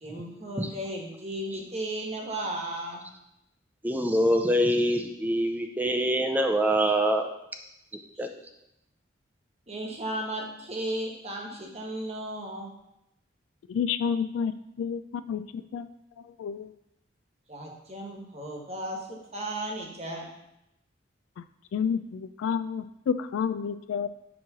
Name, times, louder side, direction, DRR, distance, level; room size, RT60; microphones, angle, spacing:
voice 1, 0.0-3.0 9.7-12.7 17.5-20.2, right 1 dB, 30° right, 0 dB, 1.2 m, -35 dB
voice 2, 3.8-7.3 8.2-8.3, equal, 10° right, 4 dB, 0.4 m, -24 dB
voice 3, 13.7-15.0 15.3-15.4 15.7-15.9 16.4-16.7 21.7-24.1, left 7 dB, 90° left, 11 dB, 0.3 m, -29 dB
7.0 x 3.1 x 6.0 m, 0.83 s
head